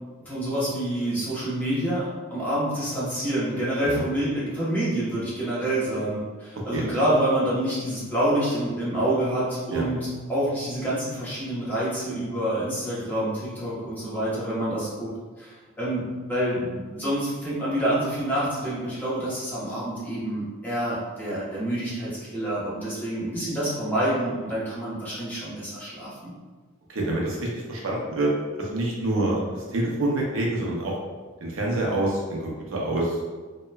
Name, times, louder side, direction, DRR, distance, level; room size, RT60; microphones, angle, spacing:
voice 1, 0.3-15.1 15.4-26.3, right 1 dB, 10° left, -9 dB, 0.8 m, -27 dB
voice 2, 26.9-28.3 28.6-30.9 31.4-33.2, right 1 dB, 90° right, -2 dB, 0.6 m, -26 dB
2.8 x 2.1 x 2.2 m, 1.4 s
head